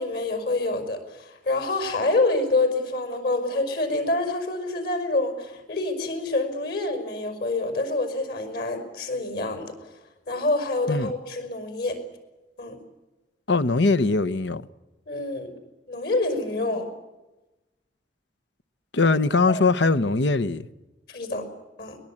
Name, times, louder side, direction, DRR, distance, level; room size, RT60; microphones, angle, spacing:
voice 1, 0.0-10.0 10.3-12.0 12.6-12.8 15.1-15.5 15.9-16.9 19.5-19.6 21.1-21.5 21.8-22.0, left 2 dB, 60° left, 5.7 m, -27 dB
voice 2, 13.5-14.6 18.9-20.7, left 3 dB, 80° left, 0.9 m, -21 dB
23.0 x 21.0 x 8.7 m
head